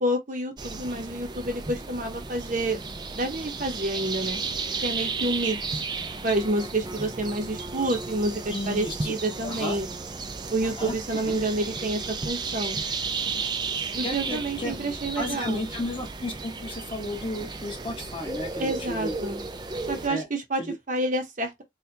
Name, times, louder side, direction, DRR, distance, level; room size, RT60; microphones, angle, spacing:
voice 1, 0.0-2.8 3.1-4.4 4.8-5.8 6.2-9.9 10.5-12.8 13.9-15.6 18.6-19.4 19.9-20.6 20.9-21.6, right 1 dB, 45° right, 0.8 m, -28 dB
sound 1, 0.6-20.1, right 4 dB, 25° right, 0.4 m, -34 dB
voice 2, 8.5-9.1 9.4-9.8 10.6-11.4 14.0-14.7 15.1-19.1 20.1-20.3 20.6-20.7, left 1 dB, 25° left, 1.1 m, -33 dB
4.3 x 2.3 x 2.8 m
head